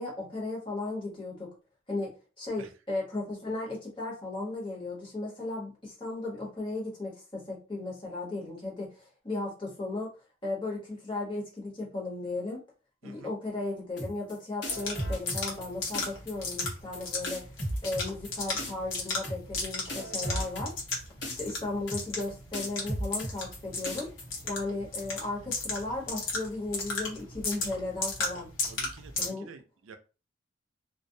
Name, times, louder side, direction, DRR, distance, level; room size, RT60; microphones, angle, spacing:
voice 1, 0.0-1.5 1.9-10.1 10.4-12.6 13.0-17.4 17.8-20.7 21.4-24.1 24.5-28.5 29.2-29.5, left 2 dB, 25° left, -3 dB, 0.9 m, -35 dB
sound 1, 14.0-14.3 14.6-15.7 15.9-16.3 16.6-17.0 17.2-18.3 18.6-19.0 19.2-19.6 19.9-20.9 21.2-21.6 21.9-22.2 22.5-23.6 23.8-24.2, equal, 60° left, 1.1 m, -35 dB
sound 2, 14.7-29.3, left 3 dB, 80° left, 0.9 m, -36 dB
voice 2, 28.6-30.0, right 5 dB, 80° right, 8 dB, 0.4 m, -49 dB
2.4 x 2.0 x 2.6 m, 0.33 s
head